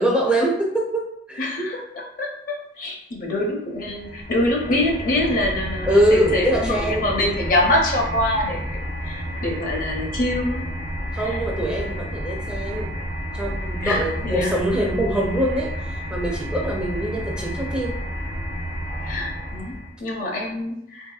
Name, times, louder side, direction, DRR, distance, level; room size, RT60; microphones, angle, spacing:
voice 1, 0.0-1.4 5.9-7.1 11.1-12.9 13.3-18.0, right 1 dB, 5° right, -2 dB, 0.4 m, -23 dB
voice 2, 1.4-10.7 11.1-11.4 13.8-14.6 19.0-21.1, left 1 dB, 45° left, 0 dB, 0.6 m, -25 dB
sound 1, 3.8-20.0, equal, 60° right, 0.5 m, -30 dB
3.5 x 2.7 x 2.3 m, 0.77 s
head